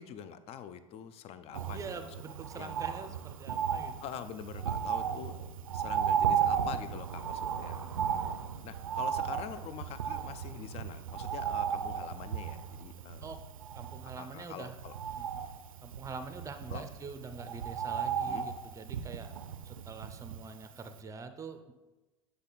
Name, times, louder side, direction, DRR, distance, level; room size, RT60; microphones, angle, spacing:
voice 1, 0.0-2.1 2.5-2.7 4.0-5.4 5.7-7.8 8.6-13.3 14.2-14.9 16.7-16.8 18.3-18.5, left 9 dB, 35° left, 12 dB, 0.4 m, -44 dB
Bird, 1.5-20.6 21.0-21.1, right 8 dB, 80° right, 0.4 m, -35 dB
voice 2, 1.7-4.0 8.1-8.4 13.2-13.4 13.7-14.8 15.1-15.4 15.8-19.3 19.6-21.7, right 4 dB, 20° right, 9 dB, 0.5 m, -45 dB
8.0 x 3.4 x 4.0 m, 1.1 s
figure-of-eight pair, 80°, 17 cm